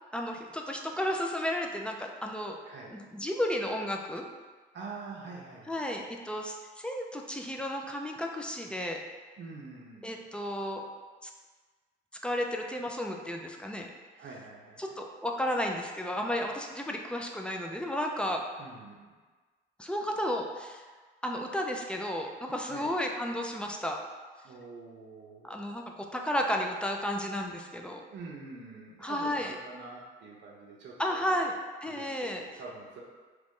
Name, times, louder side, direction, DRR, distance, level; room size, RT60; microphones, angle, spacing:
voice 1, 0.1-2.6 2.9-4.2 5.7-9.0 10.0-10.8 11.2-11.3 12.2-13.9 14.8-18.4 19.8-20.8 21.2-24.0 25.4-28.0 29.0-29.5 31.0-31.5 31.8-32.4, equal, 5° left, 1 dB, 0.3 m, -33 dB
voice 2, 2.6-3.0 4.7-6.1 9.4-10.2 14.1-14.9 18.6-19.1 22.7-23.0 24.4-25.6 28.1-31.4 31.9-33.0, right 3 dB, 65° right, -3 dB, 0.6 m, -46 dB
3.0 x 2.5 x 3.6 m, 1.4 s
cardioid pair, 90°, 20 cm